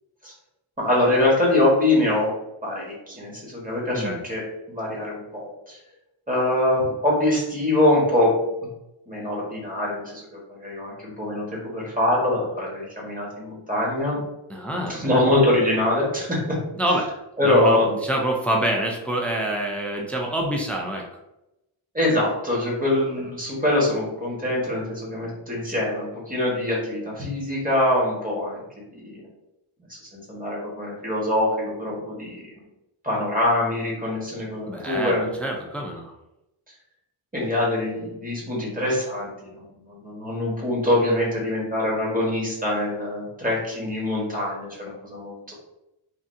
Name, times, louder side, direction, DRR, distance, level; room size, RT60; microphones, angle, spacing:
voice 1, 0.8-2.3 2.6-4.4 4.7-5.8 6.3-8.7 9.1-14.2 14.9-16.6 17.4-17.9 21.9-28.6 28.9-29.2 29.9-32.4 33.0-35.3 37.3-45.5, left 1 dB, 15° right, -4 dB, 1.3 m, -24 dB
voice 2, 14.5-15.3 16.8-17.1 17.4-21.1 34.7-36.1, right 1 dB, 5° left, 0 dB, 0.5 m, -26 dB
3.3 x 2.6 x 2.6 m, 0.90 s
wide cardioid pair, 60°, 50 cm